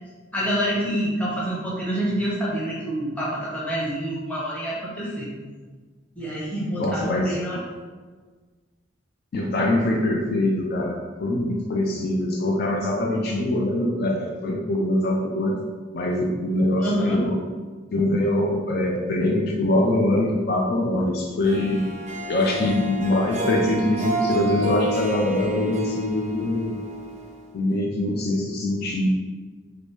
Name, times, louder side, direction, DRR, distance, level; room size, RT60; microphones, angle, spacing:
voice 1, 0.3-5.3 6.2-7.6 16.8-17.2, equal, 5° left, -7 dB, 0.7 m, -27 dB
voice 2, 6.8-7.6 9.3-15.6 15.9-17.4 17.9-21.9 22.3-26.8 27.5-29.1, left 1 dB, 50° left, 0 dB, 0.3 m, -23 dB
Harp, 21.4-27.7, right 1 dB, 35° right, 0.4 m, -30 dB
2.9 x 2.6 x 3.2 m, 1.4 s
head